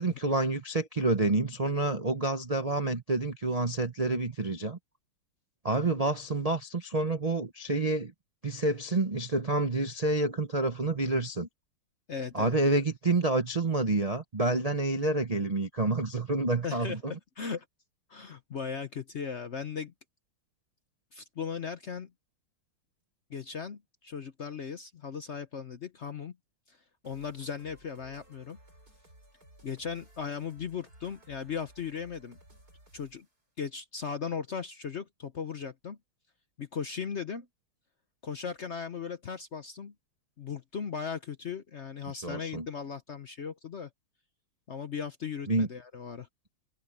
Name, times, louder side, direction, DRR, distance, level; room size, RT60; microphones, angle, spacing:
voice 1, 0.0-4.8 5.6-8.1 8.4-11.5 12.3-17.1 42.2-42.7 45.5-45.7, right 2 dB, 75° right, 0.3 m, -28 dB
voice 2, 12.1-12.5 16.6-17.6 18.1-19.9 21.1-22.1 23.3-26.4 26.7-26.8 27.0-28.6 29.6-32.4 32.9-33.3 33.6-36.0 36.6-37.5 38.2-39.9 40.4-43.9 44.7-46.3, left 6 dB, 60° left, 0.7 m, -37 dB
sound 1, 27.0-33.3, right 1 dB, 45° right, 8.5 m, -58 dB
omnidirectional pair, 2.3 m